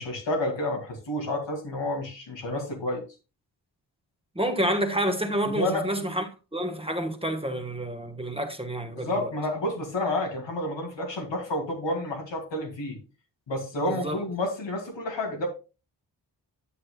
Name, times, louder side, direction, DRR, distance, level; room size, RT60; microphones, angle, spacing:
voice 1, 0.0-3.0 5.5-5.9 8.9-13.0 13.5-15.5, left 1 dB, 90° left, 2.6 m, -30 dB
voice 2, 4.3-6.3 6.5-9.3 13.8-14.2, right 1 dB, 15° right, 1.2 m, -29 dB
10.0 x 7.6 x 2.3 m
cardioid pair, 70°, 43 cm